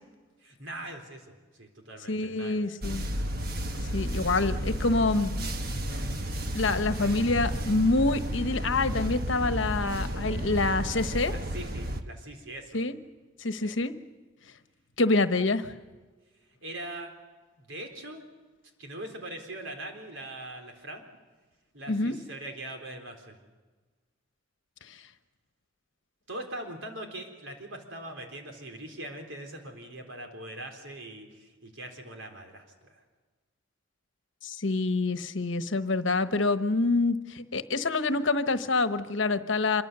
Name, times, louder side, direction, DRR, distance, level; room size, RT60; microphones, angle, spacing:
voice 1, 0.4-2.6 11.3-12.8 13.6-13.8 16.6-17.1 17.6-18.3 18.8-21.1 21.7-23.4 24.9-25.0 26.3-33.0, right 1 dB, 80° right, 4 dB, 3.9 m, -41 dB
voice 2, 2.1-3.1 3.9-5.5 6.5-11.3 12.7-12.9 13.4-13.9 15.0-15.7 21.9-22.2 24.9-25.0 34.4-39.8, left 3 dB, 75° left, 10 dB, 1.2 m, -26 dB
sound 1, 2.8-12.0, equal, 50° right, 1.3 m, -32 dB
26.5 x 23.5 x 6.9 m, 1.3 s
head